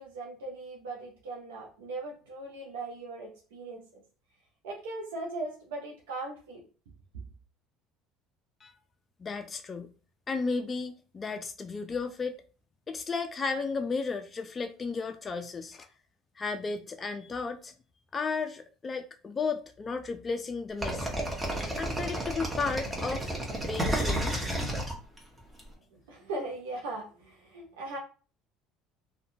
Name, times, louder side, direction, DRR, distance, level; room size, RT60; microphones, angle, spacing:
voice 1, 0.0-4.0 4.6-6.6 25.9-28.0, right 2 dB, 85° right, -1 dB, 0.6 m, -39 dB
voice 2, 9.2-9.9 10.3-12.4 12.9-15.9 16.4-17.7 18.1-21.1 21.8-24.4, left 4 dB, 30° left, 7 dB, 0.3 m, -34 dB
sound 1, 20.8-25.6, right 1 dB, 15° right, 1.1 m, -31 dB
2.6 x 2.2 x 2.6 m, 0.37 s
hypercardioid pair, 75°, 0 cm